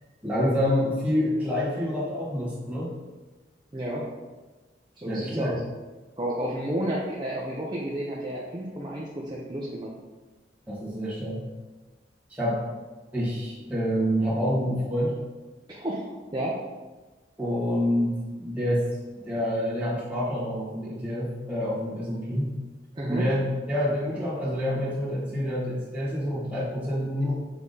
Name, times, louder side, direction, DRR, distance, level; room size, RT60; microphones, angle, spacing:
voice 1, 0.2-2.9 5.0-5.5 10.7-11.5 12.3-12.6 13.1-15.1 17.4-18.8 19.2-22.5 23.1-23.4 23.7-27.3, equal, 10° right, -9 dB, 1.9 m, -27 dB
voice 2, 3.7-4.0 5.0-5.6 6.2-9.9 15.7-16.0 16.3-16.6 22.9-23.2, right 1 dB, 25° right, -5 dB, 0.7 m, -31 dB
7.0 x 3.6 x 4.1 m, 1.2 s
head